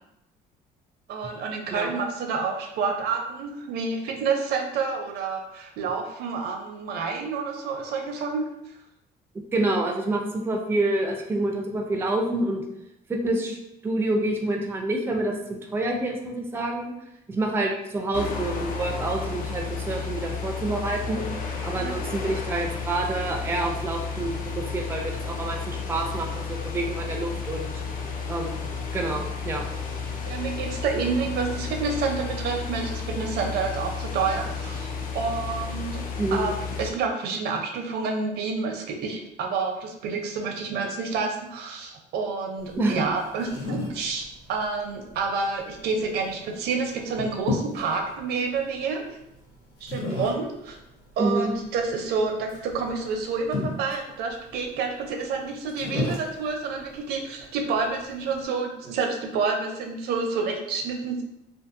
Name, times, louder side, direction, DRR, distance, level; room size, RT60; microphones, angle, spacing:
voice 1, 1.1-8.5 21.8-22.0 30.3-34.9 35.1-36.0 36.3-36.5 36.8-49.1 49.8-50.8 51.2-61.2, right 4 dB, 70° right, 3 dB, 0.5 m, -29 dB
voice 2, 9.3-12.6 13.1-13.6 13.8-16.9 17.3-21.3 21.6-27.7 28.3-28.6 28.9-29.6 36.2-36.5 42.8-42.9 51.2-51.5, right 2 dB, 15° right, 2 dB, 0.4 m, -27 dB
sound 1, 18.1-36.9, left 5 dB, 55° left, 0.5 m, -32 dB
sound 2, 42.6-58.4, left 2 dB, 80° left, 0.8 m, -36 dB
2.6 x 2.5 x 2.4 m, 0.83 s
cardioid pair, 110°, 17 cm